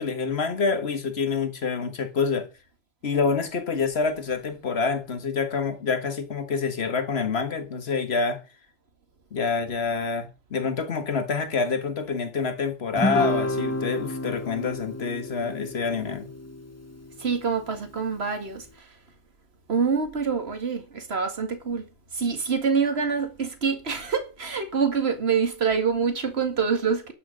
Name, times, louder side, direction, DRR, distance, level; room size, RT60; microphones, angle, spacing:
voice 1, 0.0-2.5 3.0-8.4 9.3-16.3, left 5 dB, 60° left, 1.7 m, -27 dB
Guitar, 13.0-17.6, left 1 dB, 15° left, 1.2 m, -30 dB
voice 2, 17.2-18.6 19.7-21.8 22.1-27.1, right 5 dB, 60° right, 2.2 m, -26 dB
12.0 x 6.2 x 6.4 m
omnidirectional pair, 1.2 m